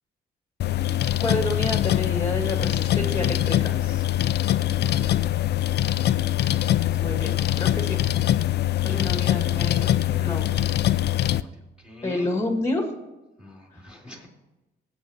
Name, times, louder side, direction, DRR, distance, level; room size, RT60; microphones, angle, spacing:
sound 1, 0.6-11.4, left 13 dB, 55° left, 0.4 m, -23 dB
voice 1, 0.8-3.7 6.9-8.0 8.8-9.9 10.2-10.5 12.0-12.9, left 2 dB, 15° left, 3 dB, 2.0 m, -29 dB
voice 2, 2.7-4.0 4.7-5.3 11.0-11.5 11.8-12.4 13.4-14.3, equal, 5° right, -2 dB, 2.9 m, -44 dB
19.0 x 8.2 x 2.9 m, 1.1 s
cardioid pair, 90°, 20 cm